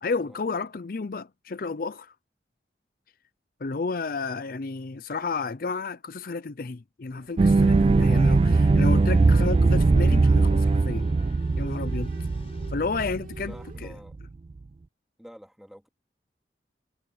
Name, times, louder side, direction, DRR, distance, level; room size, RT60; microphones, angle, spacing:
voice 1, 0.0-2.1 3.6-11.1 11.6-12.2 12.7-14.0, left 4 dB, 55° left, 0.6 m, -32 dB
sound 1, 7.1-13.8, right 1 dB, 50° right, 3.1 m, -49 dB
sound 2, 7.4-13.9 14.2-14.3, right 3 dB, 35° right, 0.3 m, -21 dB
sound 3, 7.5-12.7, left 1 dB, 35° left, 5.6 m, -49 dB
voice 2, 13.4-14.2 15.2-15.9, equal, ahead, 2.7 m, -48 dB
head